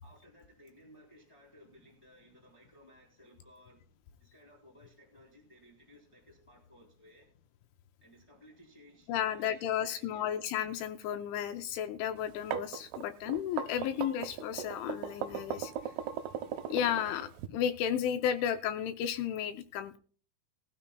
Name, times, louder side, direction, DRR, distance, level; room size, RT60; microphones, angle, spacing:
voice 1, 0.0-3.8 4.2-7.2 8.0-10.3, equal, 10° left, -3 dB, 2.5 m, -59 dB
voice 2, 9.1-15.7 16.7-20.0, left 9 dB, 80° left, 8 dB, 2.9 m, -33 dB
sound 1, 12.2-17.5, right 10 dB, 80° right, 2.3 m, -38 dB
20.0 x 12.5 x 2.3 m, 0.43 s
omnidirectional pair, 5.7 m